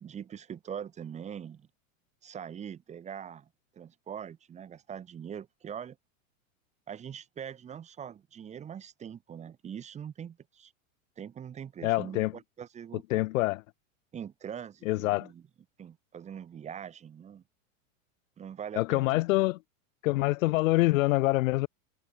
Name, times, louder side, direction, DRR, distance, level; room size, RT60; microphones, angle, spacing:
voice 1, 0.0-1.7 2.2-3.5 3.7-6.0 6.9-10.7 11.2-13.0 14.1-15.4 15.8-17.4 18.4-19.2, right 8 dB, 15° right, 1.2 m, -42 dB
voice 2, 11.8-12.3 13.1-13.6 14.9-15.3 18.7-19.6 20.0-21.7, left 20 dB, 75° left, 0.5 m, -25 dB
supercardioid pair, 145°, 40 cm